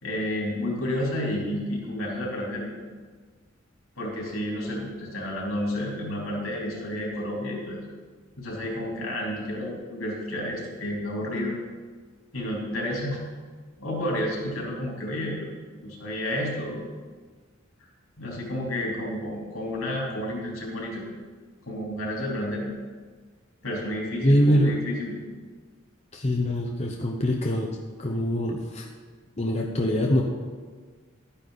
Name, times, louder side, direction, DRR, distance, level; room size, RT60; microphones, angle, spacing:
voice 1, 0.0-2.7 4.0-7.8 8.4-11.5 12.3-13.2 13.8-15.4 15.8-16.8 18.2-21.0 21.6-22.6 23.6-25.2, left 1 dB, 80° left, -3 dB, 3.7 m, -31 dB
voice 2, 24.2-24.8 26.1-27.7 28.0-28.9 29.4-30.2, equal, 30° left, 1 dB, 0.8 m, -23 dB
12.5 x 9.9 x 4.1 m, 1.5 s
head